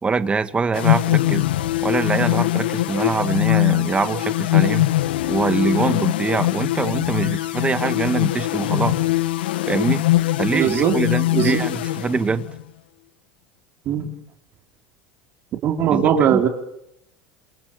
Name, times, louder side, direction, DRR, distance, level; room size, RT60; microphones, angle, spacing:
voice 1, 0.0-1.5 1.8-4.9 5.3-9.0 9.7-10.0 10.4-12.5 15.9-16.4, right 4 dB, 20° right, 11 dB, 2.2 m, -23 dB
sound 1, 0.7-12.6, left 16 dB, 85° left, 1.2 m, -22 dB
voice 2, 10.5-11.0 11.3-11.6 13.9-14.1 15.6-16.5, right 9 dB, 50° right, 5 dB, 4.7 m, -19 dB
28.0 x 27.5 x 5.3 m, 0.76 s
supercardioid pair, 95°, 5 cm